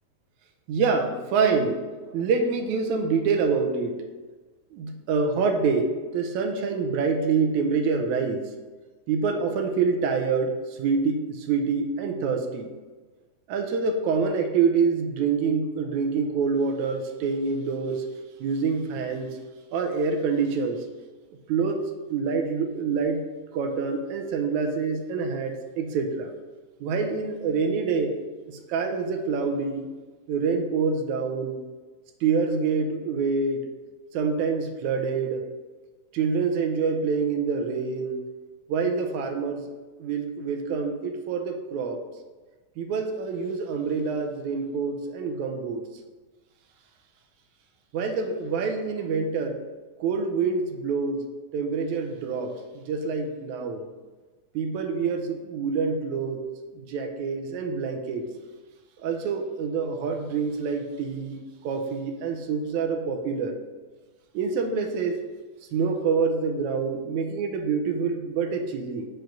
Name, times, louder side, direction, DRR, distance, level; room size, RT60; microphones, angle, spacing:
voice 1, 0.7-1.8 2.1-4.0 4.7-8.5 9.1-12.7 13.5-18.0 18.4-19.3 19.7-20.8 21.5-23.2 23.5-26.3 26.8-28.1 28.5-29.9 30.3-31.6 32.2-33.7 34.1-35.5 36.1-38.2 38.7-39.6 40.0-42.0 42.8-45.9 47.9-49.6 50.0-51.2 51.5-53.9 54.6-56.4 56.8-58.3 59.0-63.6 64.3-65.2 65.7-69.1, right 5 dB, 75° right, 4 dB, 2.0 m, -26 dB
7.6 x 4.9 x 5.2 m, 1.3 s
omnidirectional pair, 3.5 m